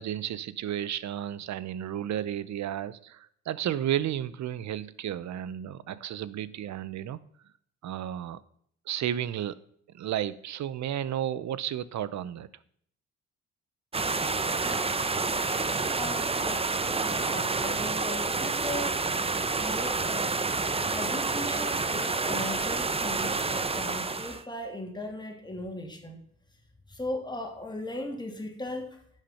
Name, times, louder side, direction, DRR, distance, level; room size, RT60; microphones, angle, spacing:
voice 1, 0.0-7.2 7.8-8.4 8.9-9.6 9.9-12.5, right 11 dB, 65° right, 0.8 m, -32 dB
sound 1, 13.9-24.4, right 3 dB, 20° right, 0.8 m, -29 dB
voice 2, 15.9-19.0 19.6-26.2 26.9-29.0, left 1 dB, 15° left, 2.9 m, -38 dB
11.0 x 7.4 x 5.7 m
cardioid pair, 90°, 30 cm